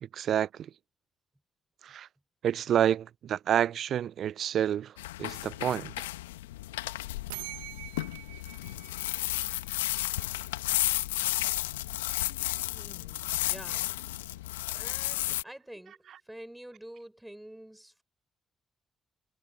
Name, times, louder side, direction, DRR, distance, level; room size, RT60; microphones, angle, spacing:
voice 1, 0.0-0.7 1.8-2.1 2.4-6.1, right 10 dB, 60° right, 0.5 m, -29 dB
sound 1, 5.0-15.4, left 16 dB, 85° left, 1.2 m, -33 dB
sound 2, 7.3-10.0, right 27 dB, 80° right, 1.4 m, -45 dB
voice 2, 12.7-13.9 14.7-18.0, right 1 dB, 10° right, 6.1 m, -48 dB
hypercardioid pair, 40°, 0 cm